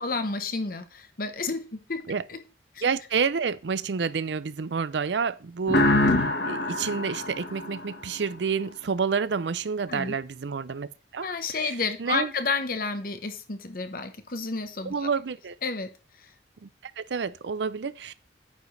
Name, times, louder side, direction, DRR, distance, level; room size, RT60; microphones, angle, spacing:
voice 1, 0.0-2.4 2.7-2.8 9.9-10.1 11.2-15.1 15.6-15.9, left 4 dB, 55° left, 1.1 m, -31 dB
voice 2, 2.8-12.3 14.9-15.6 16.6-16.7 17.0-18.1, right 5 dB, 85° right, 0.5 m, -29 dB
sound 1, 5.7-8.4, left 1 dB, 70° left, 1.4 m, -25 dB
9.3 x 7.1 x 3.3 m
head